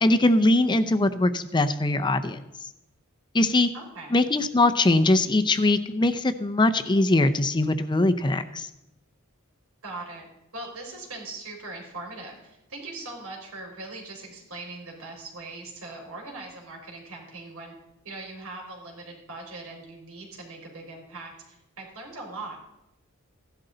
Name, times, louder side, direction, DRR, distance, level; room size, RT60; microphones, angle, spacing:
voice 1, 0.0-2.4 3.3-3.7 4.1-8.7, left 2 dB, 20° left, 9 dB, 0.6 m, -21 dB
voice 2, 3.7-4.2 9.8-10.3 10.5-17.7 18.0-22.6, right 2 dB, 80° right, 0 dB, 4.6 m, -40 dB
16.0 x 11.5 x 3.9 m, 0.88 s
head